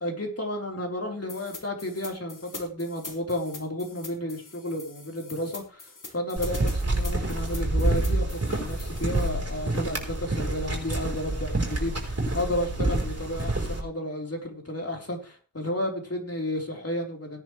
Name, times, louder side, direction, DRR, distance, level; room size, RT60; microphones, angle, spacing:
voice 1, 0.0-17.4, left 1 dB, 45° left, 1 dB, 4.3 m, -32 dB
sound 1, 1.3-9.3, left 3 dB, 70° left, 2.7 m, -44 dB
sound 2, 6.4-13.8, right 2 dB, 50° right, 4.9 m, -28 dB
17.5 x 10.5 x 3.3 m, 0.36 s
wide cardioid pair, 55°, 33 cm